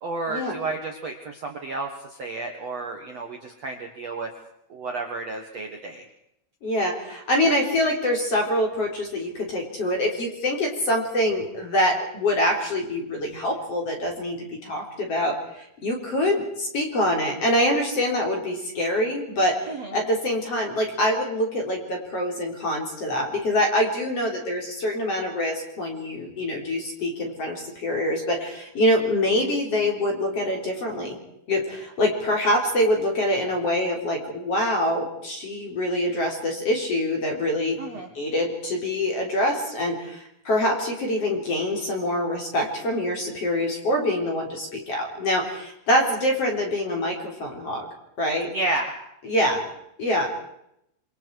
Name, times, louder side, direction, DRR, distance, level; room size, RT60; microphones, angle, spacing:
voice 1, 0.0-4.3 4.7-6.0 19.7-19.9 37.8-38.1 48.5-48.9, right 2 dB, 80° right, 3 dB, 1.4 m, -31 dB
voice 2, 6.6-31.2 31.5-37.8 38.1-47.9 48.2-48.5 49.2-49.6 50.0-50.3, left 1 dB, 35° left, 1 dB, 4.1 m, -25 dB
27.5 x 24.0 x 4.8 m, 0.78 s
omnidirectional pair, 5.8 m